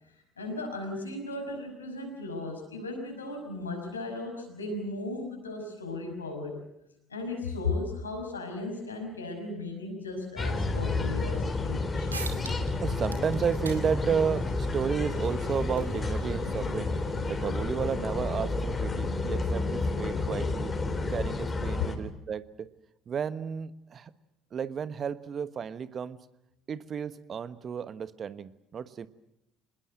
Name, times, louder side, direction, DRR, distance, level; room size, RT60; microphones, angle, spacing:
voice 1, 0.4-6.6 7.1-12.1 21.8-22.0, left 3 dB, 85° left, 2 dB, 5.8 m, -36 dB
sound 1, 10.4-22.0, left 3 dB, 25° left, 3.7 m, -30 dB
sound 2, 11.7-11.8 12.1-12.7 13.0-18.2, right 4 dB, 85° right, 2.3 m, -46 dB
voice 2, 12.8-16.9 17.3-20.7 21.1-22.7 23.1-24.1 24.5-26.2 26.7-29.1, right 7 dB, 40° right, 14 dB, 1.2 m, -32 dB
26.0 x 20.5 x 7.8 m, 0.85 s
figure-of-eight pair, 55°, 0 cm